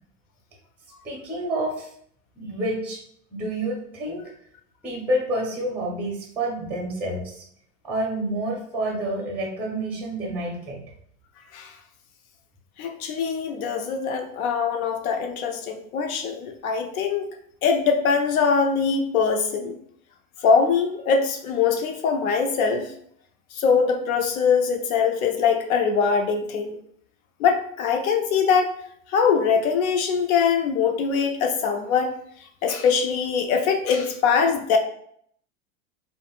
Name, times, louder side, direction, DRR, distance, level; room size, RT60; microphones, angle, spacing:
voice 1, 1.0-1.9 2.4-3.0 3.3-4.2 4.8-7.4 7.8-10.8, right 1 dB, 5° right, -1 dB, 0.5 m, -28 dB
voice 2, 12.8-17.3 17.6-19.8 20.4-22.9 23.5-26.8 27.4-28.7 29.1-32.2 32.6-34.8, left 6 dB, 80° left, 5 dB, 0.6 m, -22 dB
3.4 x 2.1 x 2.3 m, 0.65 s
hypercardioid pair, 120°, 42 cm